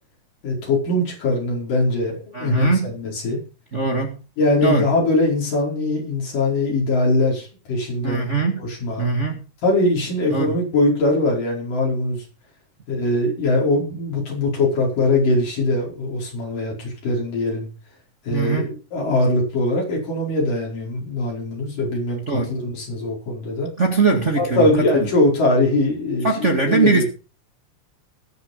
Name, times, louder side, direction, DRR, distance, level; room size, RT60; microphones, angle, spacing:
voice 1, 0.4-3.4 4.4-8.3 8.6-9.1 9.6-12.2 12.9-17.7 18.2-23.7 24.4-27.0, left 2 dB, 85° left, 6.8 m, -21 dB
voice 2, 2.3-2.9 3.7-4.2 4.6-4.9 8.0-8.6 9.0-9.4 10.3-10.6 18.3-18.7 22.3-22.5 23.8-25.1 26.2-27.0, right 4 dB, 25° right, 1.8 m, -21 dB
19.0 x 7.3 x 5.5 m
omnidirectional pair, 3.7 m